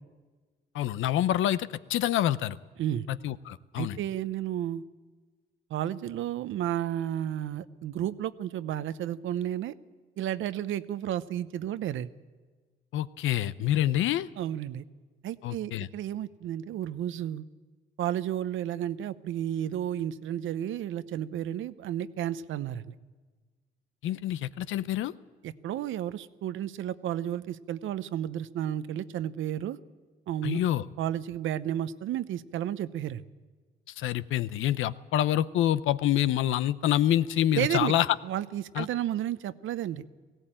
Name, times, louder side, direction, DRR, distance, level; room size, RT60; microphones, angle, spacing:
voice 1, 0.7-2.6 3.1-4.0 12.9-14.3 15.4-15.9 24.0-25.1 30.4-30.8 34.0-38.1 38.8-38.9, left 12 dB, 80° left, 15 dB, 0.7 m, -27 dB
voice 2, 3.8-4.8 5.7-9.7 10.2-12.1 14.4-14.8 15.2-17.4 18.0-23.0 25.4-29.8 30.3-30.6 31.0-33.2 37.5-37.9 38.2-40.0, right 11 dB, 80° right, 14 dB, 0.8 m, -32 dB
18.0 x 16.5 x 8.9 m, 1.4 s
cardioid pair, 90°, 20 cm